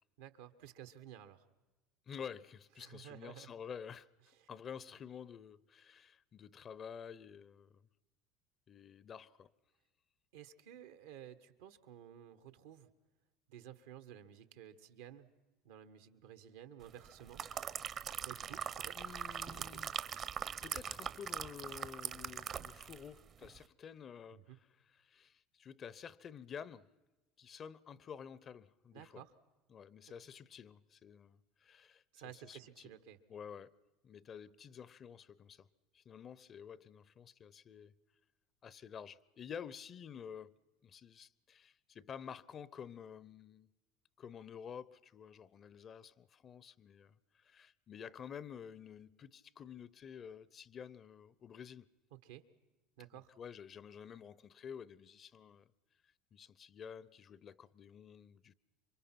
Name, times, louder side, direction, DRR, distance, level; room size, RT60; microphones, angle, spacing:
voice 1, 0.2-1.4 2.8-3.5 4.4-4.5 10.3-12.9 13.5-15.3 15.6-17.4 18.2-18.9 19.3-19.7 24.3-24.6 28.9-29.3 32.1-33.2 52.2-52.4 53.0-53.3, right 10 dB, 80° right, 1.3 m, -53 dB
voice 2, 2.1-4.1 4.5-7.9 8.7-9.5 18.5-20.0 20.6-26.9 27.4-29.2 29.7-32.0 32.3-33.0 33.3-33.8 34.0-35.7 35.9-37.9 38.6-40.5 40.8-43.7 44.2-51.9 53.1-55.7 56.3-58.5, left 7 dB, 40° left, 0.7 m, -50 dB
sound 1, 17.0-23.1 23.4-23.6, right 8 dB, 45° right, 0.9 m, -42 dB
27.0 x 24.0 x 5.9 m
hypercardioid pair, 85°, 0 cm